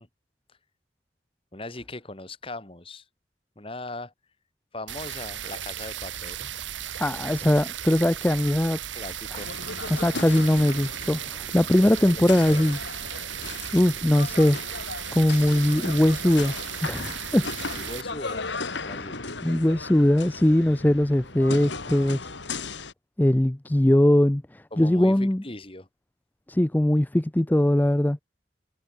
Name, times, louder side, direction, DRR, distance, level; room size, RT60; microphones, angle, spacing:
voice 1, 1.5-3.0 3.6-4.1 4.7-6.5 8.9-9.5 11.8-12.6 17.7-18.5 18.8-19.2 24.7-25.9, left 2 dB, 30° left, 2.5 m, -39 dB
sound 1, 4.9-18.0, right 10 dB, 90° right, 1.4 m, -36 dB
voice 2, 7.0-8.8 9.3-9.4 9.9-12.8 13.1-13.2 13.7-14.6 15.1-16.5 16.8-17.5 19.4-22.2 23.2-25.4 26.5-28.2, left 1 dB, 10° left, 0.4 m, -21 dB
sound 2, 9.3-22.9, left 3 dB, 75° left, 3.2 m, -36 dB
head